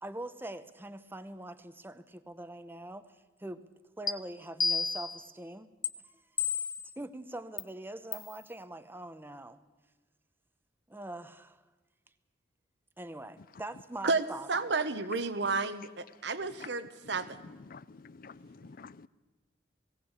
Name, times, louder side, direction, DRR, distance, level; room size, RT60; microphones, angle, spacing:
voice 1, 0.0-3.0 3.4-3.7 4.0-5.7 6.0-6.2 7.0-9.6 10.9-11.6 13.0-14.7, right 1 dB, 10° right, 0.9 m, -43 dB
sound 1, 4.1-4.2 4.6-5.2 5.8-5.9 6.4-6.9 7.6-7.7 8.1-8.3, left 5 dB, 25° left, 0.8 m, -31 dB
voice 2, 14.0-17.4, right 4 dB, 70° right, 1.2 m, -32 dB
voice 3, 17.0-19.1, left 4 dB, 50° left, 0.5 m, -49 dB
18.5 x 17.5 x 8.2 m
head